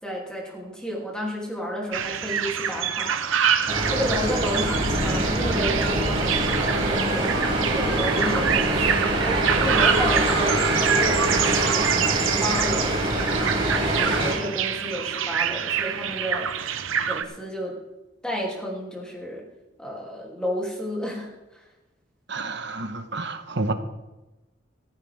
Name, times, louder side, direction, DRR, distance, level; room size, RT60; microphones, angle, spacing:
voice 1, 0.0-6.5 6.8-10.6 11.0-16.7 17.1-17.8 18.2-19.4 19.8-21.6, equal, 5° left, -3 dB, 2.9 m, -32 dB
sound 1, 1.9-17.2, right 8 dB, 70° right, 0.8 m, -26 dB
sound 2, 3.7-14.3, right 1 dB, 25° right, 5.1 m, -24 dB
voice 2, 22.3-23.7, right 3 dB, 55° right, 8 dB, 1.1 m, -29 dB
15.0 x 14.0 x 3.6 m, 1.1 s
head